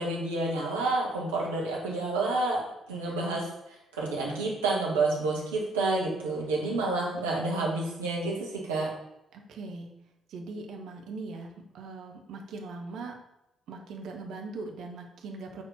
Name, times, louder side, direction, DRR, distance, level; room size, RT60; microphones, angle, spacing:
voice 1, 0.0-2.6 2.9-3.5 4.0-8.9, right 2 dB, 75° right, -3 dB, 1.5 m, -29 dB
voice 2, 9.3-9.9 10.3-13.2 13.7-15.6, right 3 dB, 60° right, 2 dB, 1.0 m, -40 dB
6.3 x 4.3 x 5.6 m, 0.87 s
figure-of-eight pair, 40°, 0 cm